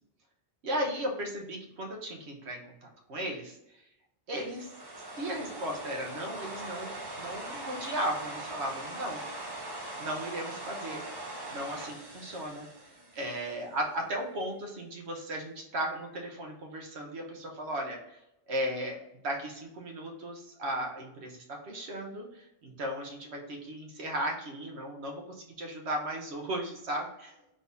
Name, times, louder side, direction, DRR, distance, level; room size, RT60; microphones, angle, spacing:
voice 1, 0.6-3.6 4.3-4.7 5.1-9.2 10.0-11.1 11.5-12.7 13.1-18.2 18.5-19.0 19.2-27.3, right 1 dB, 75° right, 1 dB, 1.1 m, -36 dB
sound 1, 4.3-13.6, right 1 dB, 25° right, 0.7 m, -41 dB
3.8 x 2.7 x 3.5 m, 0.84 s
omnidirectional pair, 1.1 m